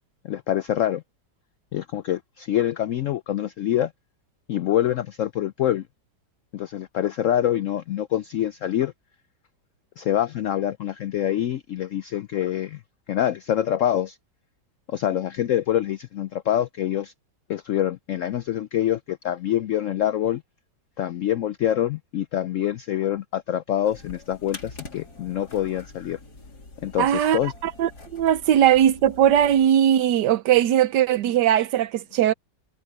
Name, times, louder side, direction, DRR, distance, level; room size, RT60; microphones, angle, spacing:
voice 1, 0.2-1.0 1.7-3.9 4.5-5.8 6.5-8.9 10.0-12.8 13.1-14.2 14.9-17.1 17.5-20.4 21.0-26.2 26.8-27.5, left 11 dB, 80° left, 0.7 m, -25 dB
sound 1, 23.8-29.7, left 3 dB, 60° left, 4.0 m, -45 dB
voice 2, 27.0-32.3, right 10 dB, 75° right, 1.4 m, -20 dB
omnidirectional pair, 1.9 m